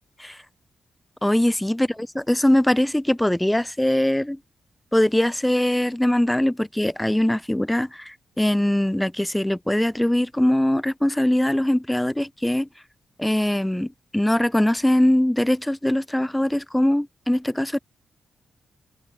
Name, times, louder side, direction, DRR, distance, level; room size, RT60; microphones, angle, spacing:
voice 1, 1.2-1.8 2.3-4.4 4.9-12.7 13.2-17.8, left 1 dB, 10° left, 0.4 m, -21 dB
open air
cardioid pair, 70°, 0 cm